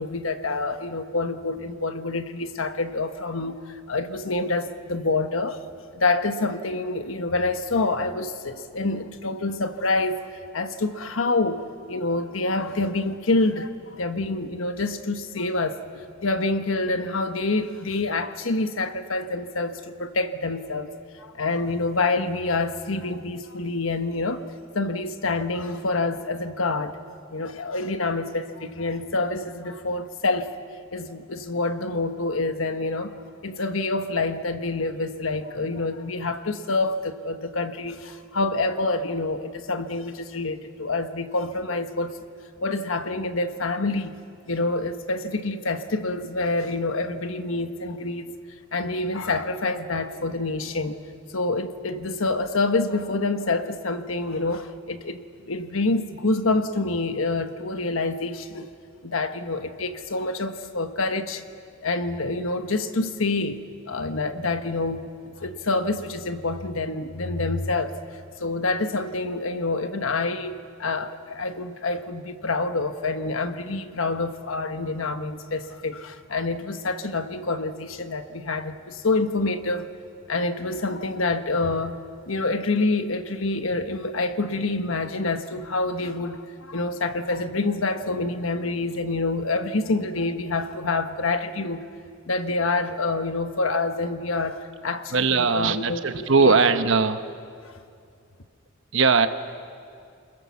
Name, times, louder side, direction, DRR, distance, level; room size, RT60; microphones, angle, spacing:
voice 1, 0.0-5.6 5.9-10.2 10.5-24.5 24.7-27.0 27.3-30.5 30.9-33.1 33.4-42.1 42.6-44.2 44.5-48.4 48.7-51.0 51.3-58.7 59.0-61.4 61.8-63.6 63.9-68.0 68.4-79.9 80.3-82.0 82.3-91.8 92.2-96.6 97.6-97.7, left 3 dB, 85° left, 8 dB, 1.2 m, -27 dB
voice 2, 95.1-97.2 98.9-99.3, right 4 dB, 70° right, 9 dB, 1.1 m, -20 dB
29.5 x 21.0 x 7.2 m, 2.4 s
head